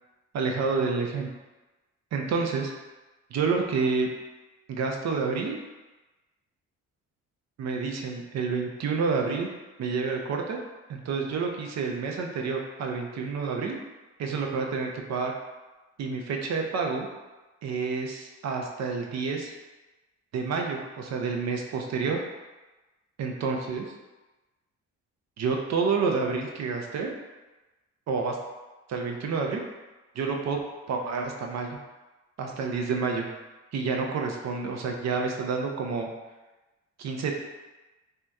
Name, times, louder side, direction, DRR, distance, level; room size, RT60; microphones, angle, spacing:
voice 1, 0.3-1.3 2.1-2.7 3.3-4.1 4.7-5.6 7.6-9.5 9.8-10.6 10.9-13.8 14.2-15.3 16.0-17.1 17.6-19.5 20.3-22.2 23.2-23.8 25.4-27.1 28.1-28.4 28.9-29.6 30.2-30.6 30.9-31.7 32.4-33.3 33.7-36.1 37.0-37.3, right 4 dB, 60° right, 2 dB, 0.6 m, -29 dB
2.7 x 2.2 x 3.5 m, 1.1 s
cardioid pair, 90°, 30 cm